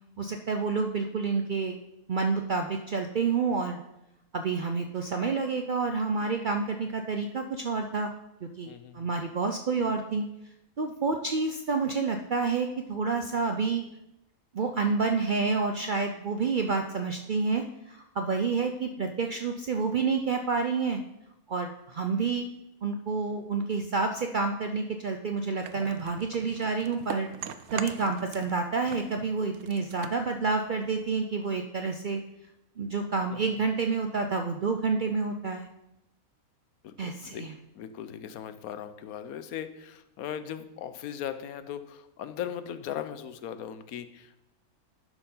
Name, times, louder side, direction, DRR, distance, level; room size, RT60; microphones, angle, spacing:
voice 1, 0.2-1.8 2.1-3.8 4.3-8.1 8.4-10.3 10.8-13.8 14.5-21.0 21.5-22.5 22.8-27.3 27.7-32.2 32.8-35.7 37.0-37.5, right 4 dB, 60° right, 5 dB, 0.5 m, -29 dB
voice 2, 8.7-9.1 36.8-37.4 37.7-44.4, left 9 dB, 85° left, 11 dB, 1.1 m, -38 dB
sound 1, 25.6-28.6 28.8-31.2, right 9 dB, 85° right, 1.1 m, -41 dB
11.0 x 4.5 x 5.5 m, 0.88 s
omnidirectional pair, 1.5 m